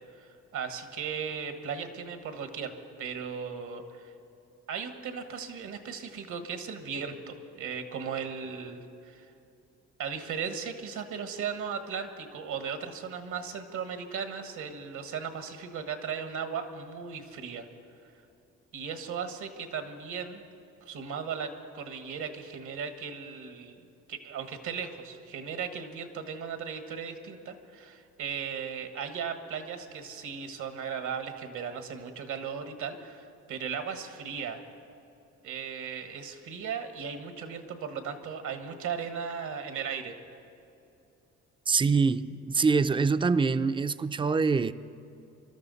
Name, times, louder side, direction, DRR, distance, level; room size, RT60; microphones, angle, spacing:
voice 1, 0.1-4.1 4.7-9.3 10.0-17.7 18.7-20.4 20.8-34.6 35.4-40.1, right 6 dB, 75° right, 7 dB, 1.5 m, -37 dB
voice 2, 41.7-44.7, right 4 dB, 15° right, 13 dB, 0.4 m, -25 dB
24.0 x 12.5 x 4.1 m, 2.7 s
cardioid pair, 90°, 30 cm